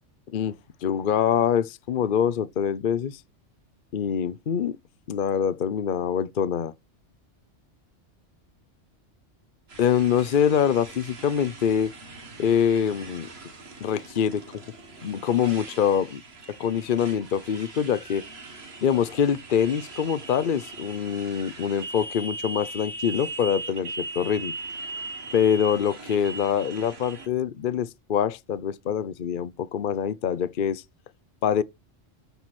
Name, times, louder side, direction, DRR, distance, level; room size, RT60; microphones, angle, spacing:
voice 1, 0.3-3.2 3.9-4.8 5.1-6.7 9.8-11.9 12.4-13.3 13.8-14.4 15.0-16.2 16.6-18.3 18.8-24.5 25.3-30.8 31.4-31.6, left 8 dB, 50° left, 0.8 m, -24 dB
Motorcycle, 9.7-27.3, right 2 dB, 55° right, 2.0 m, -40 dB
13.5 x 4.6 x 4.2 m
omnidirectional pair, 1.2 m